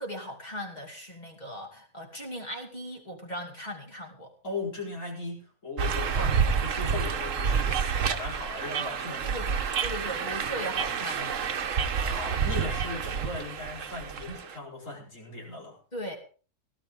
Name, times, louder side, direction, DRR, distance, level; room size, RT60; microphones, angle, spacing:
voice 1, 0.0-4.3 6.9-7.1 9.2-11.5 15.9-16.2, equal, 30° left, 2 dB, 2.9 m, -38 dB
voice 2, 4.4-9.4 12.1-15.8, left 3 dB, 70° left, -2 dB, 4.9 m, -38 dB
sound 1, 5.8-14.6, right 6 dB, 70° right, 1.3 m, -29 dB
17.5 x 13.0 x 3.7 m, 0.38 s
omnidirectional pair, 1.4 m